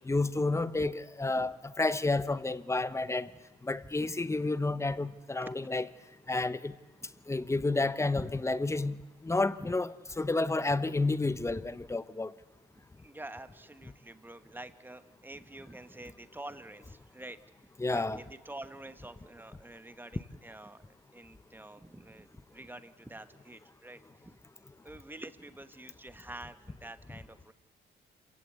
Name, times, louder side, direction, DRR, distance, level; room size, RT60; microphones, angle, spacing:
voice 1, 0.0-3.3 3.6-5.8 6.3-6.8 7.3-9.0 9.2-12.3 17.8-18.2, left 2 dB, 15° left, 0.9 m, -30 dB
voice 2, 12.7-17.5 17.9-24.4 24.8-27.5, right 1 dB, 10° right, 1.2 m, -48 dB
27.0 x 16.5 x 8.2 m
cardioid pair, 90°, 20 cm